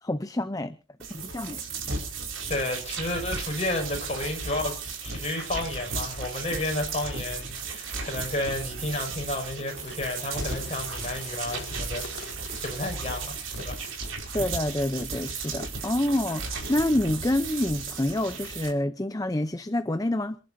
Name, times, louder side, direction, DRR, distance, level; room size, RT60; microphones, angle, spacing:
voice 1, 0.0-0.7 1.1-1.6 14.3-20.4, left 1 dB, 20° left, 0.6 m, -27 dB
sound 1, 1.0-18.7, right 4 dB, 85° right, 4.9 m, -35 dB
voice 2, 2.5-4.8 5.0-12.3 12.6-13.8, left 2 dB, 35° left, 5.8 m, -32 dB
sound 2, 9.6-13.9, left 4 dB, 60° left, 2.3 m, -44 dB
28.0 x 11.0 x 2.7 m
head